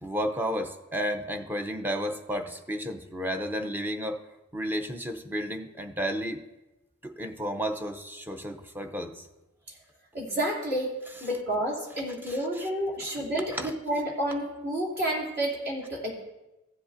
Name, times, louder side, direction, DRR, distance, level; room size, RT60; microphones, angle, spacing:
voice 1, 0.0-4.2 4.5-6.4 7.0-9.2 12.3-12.7 13.1-13.2 13.5-13.7, equal, 10° right, 6 dB, 0.6 m, -32 dB
voice 2, 10.1-10.9 11.2-16.2, right 1 dB, 50° right, -4 dB, 2.9 m, -30 dB
15.5 x 7.6 x 2.6 m, 1.0 s
head